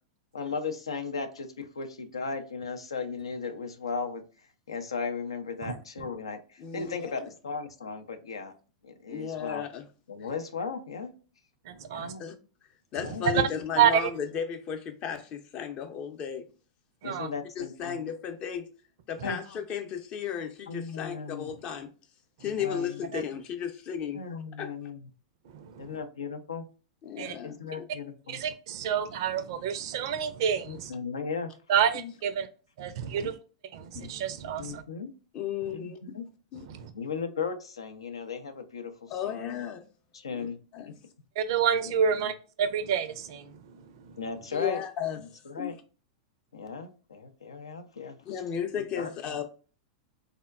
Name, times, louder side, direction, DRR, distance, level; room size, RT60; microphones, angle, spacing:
voice 1, 0.3-4.2 4.7-8.5 8.8-9.6 10.1-11.1 11.9-12.3 13.0-13.6 17.0-18.0 19.2-19.4 20.7-21.5 22.4-23.1 24.1-25.1 25.8-26.6 27.4-28.4 30.6-31.5 33.1-33.3 34.6-35.1 35.7-36.3 36.9-38.9 39.2-39.6 40.1-40.6 40.9-41.0 41.8-42.3 44.2-44.8 45.5-45.7 46.5-48.2 49.0-49.1, left 5 dB, 80° left, 0.4 m, -36 dB
voice 2, 6.6-7.1 9.1-9.9 12.2-12.3 12.9-16.5 17.6-18.7 19.1-21.9 22.4-24.2 24.6-24.7 27.0-27.8 31.9-32.1 33.9-34.1 35.3-36.2 36.5-36.7 39.1-39.8 40.4-40.9 44.5-45.7 48.3-49.4, left 8 dB, 40° left, 0.5 m, -34 dB
voice 3, 11.7-12.1 13.3-13.4 13.8-14.0 17.0-17.3 23.1-23.2 25.5-25.8 27.2-27.4 28.3-30.9 31.7-32.5 32.8-33.3 33.7-34.8 36.7-36.9 41.4-43.6, right 8 dB, 60° right, 0.4 m, -28 dB
3.5 x 2.1 x 2.3 m
hypercardioid pair, 100°, 3 cm